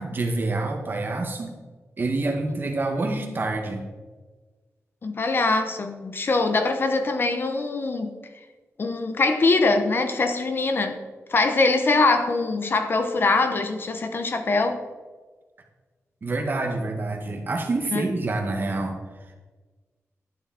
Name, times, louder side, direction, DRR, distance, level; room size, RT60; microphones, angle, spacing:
voice 1, 0.0-1.6 2.0-3.8 16.2-19.0, right 2 dB, 40° right, 2 dB, 1.9 m, -27 dB
voice 2, 5.0-8.1 8.8-11.0 11.3-14.8 17.9-18.0, left 3 dB, 45° left, 7 dB, 1.0 m, -23 dB
12.0 x 10.5 x 4.4 m, 1.3 s
wide cardioid pair, 170°, 5 cm